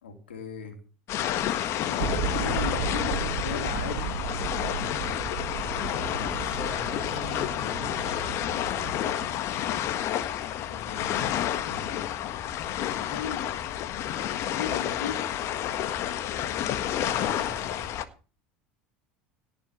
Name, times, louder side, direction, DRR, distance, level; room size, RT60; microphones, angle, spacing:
voice 1, 0.0-0.8 1.9-4.2 9.4-10.2 10.7-12.0 13.0-13.5 14.5-15.3, left 6 dB, 90° left, 5 dB, 3.4 m, -38 dB
sound 1, 1.1-18.0, left 11 dB, 55° left, 1.6 m, -30 dB
sound 2, 2.0-9.4, right 7 dB, 75° right, 1.7 m, -34 dB
voice 2, 6.0-8.4 17.0-18.0, equal, 15° right, 2 dB, 6.6 m, -43 dB
18.0 x 6.1 x 8.4 m, 0.37 s
hypercardioid pair, 80°, 6 cm